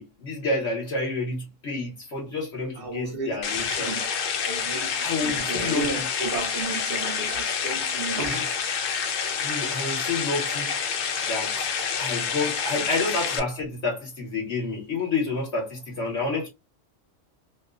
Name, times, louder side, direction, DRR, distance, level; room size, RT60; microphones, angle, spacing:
voice 1, 0.0-3.9 5.0-6.1 8.3-8.5 9.4-10.7 11.2-11.6 12.0-16.5, left 3 dB, 60° left, 1.1 m, -29 dB
voice 2, 2.8-4.1 4.4-8.4, right 3 dB, 55° right, 0.8 m, -33 dB
sound 1, 3.4-13.4, left 6 dB, 85° left, 1.0 m, -28 dB
2.9 x 2.0 x 2.3 m
omnidirectional pair, 1.3 m